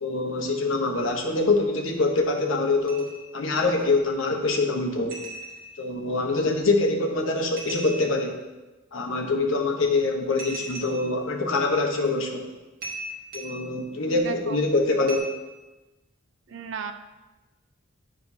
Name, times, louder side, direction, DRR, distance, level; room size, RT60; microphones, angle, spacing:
voice 1, 0.0-5.2 5.8-8.4 8.9-12.5 13.3-15.3, left 3 dB, 70° left, 2 dB, 1.0 m, -24 dB
sound 1, 2.9-3.3 3.8-3.9 5.1-5.9 7.6-8.3 10.4-11.2 12.1-12.2 12.8-13.7 15.1-15.2, right 2 dB, 45° right, 1.4 m, -38 dB
voice 2, 14.1-14.6 16.5-16.9, right 5 dB, 60° right, 8 dB, 0.5 m, -35 dB
10.5 x 5.1 x 2.7 m, 1.1 s
head